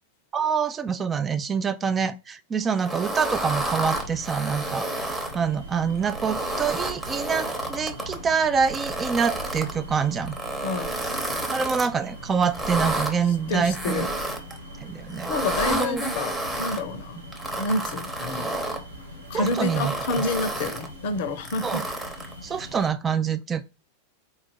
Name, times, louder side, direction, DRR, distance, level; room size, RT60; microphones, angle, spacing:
voice 1, 0.3-5.1 5.3-10.4 11.5-14.1 14.8-15.3 15.7-16.0 19.3-20.3 21.6-21.8 22.4-23.6, right 6 dB, 20° right, 0.4 m, -26 dB
sound 1, 2.8-5.4 5.9-8.2 8.6-9.7 10.3-11.9 12.4-13.1 13.7-14.6 15.1-16.8 17.3-18.8 19.3-20.9 21.4-22.3, right 1 dB, 5° right, 0.9 m, -30 dB
sound 2, 3.9-22.9, equal, 80° right, 1.3 m, -41 dB
voice 2, 10.6-11.0 13.5-14.1 15.3-17.2 17.6-18.6 19.3-21.8, left 3 dB, 50° left, 0.6 m, -28 dB
4.2 x 2.5 x 4.2 m
figure-of-eight pair, 90°, 0 cm